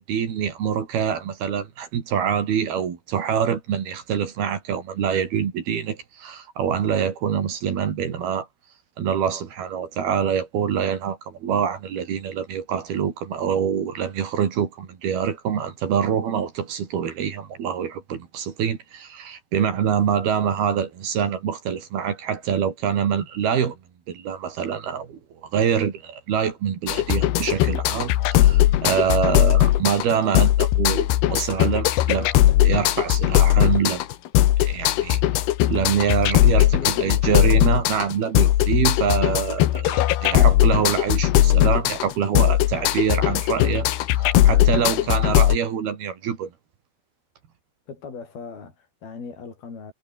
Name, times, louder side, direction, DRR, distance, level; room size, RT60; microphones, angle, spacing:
voice 1, 0.0-8.5 9.0-23.8 24.1-32.3 32.6-34.0 34.6-35.2 35.7-43.9 44.2-46.5, right 8 dB, 60° right, 4.3 m, -25 dB
sound 1, 26.9-45.6, left 14 dB, 70° left, 3.0 m, -19 dB
voice 2, 36.7-37.2 37.6-37.8 45.0-45.1 47.9-49.9, left 5 dB, 50° left, 8.5 m, -38 dB
omnidirectional pair, 5.4 m